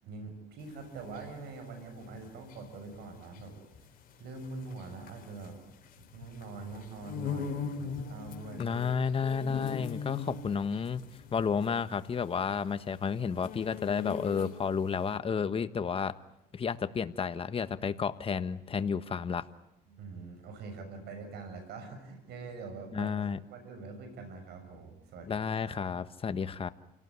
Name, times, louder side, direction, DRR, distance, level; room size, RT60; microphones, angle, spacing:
voice 1, 0.0-3.6 4.2-8.8 19.9-25.9, right 4 dB, 75° right, 6 dB, 6.9 m, -44 dB
sound 1, 0.7-14.9, left 6 dB, 55° left, 3.8 m, -41 dB
voice 2, 8.6-11.0 11.3-16.1 16.5-19.5 22.9-23.4 25.3-26.7, left 6 dB, 35° left, 11 dB, 1.4 m, -31 dB
29.0 x 18.0 x 9.7 m, 0.86 s
cardioid pair, 110°, 17 cm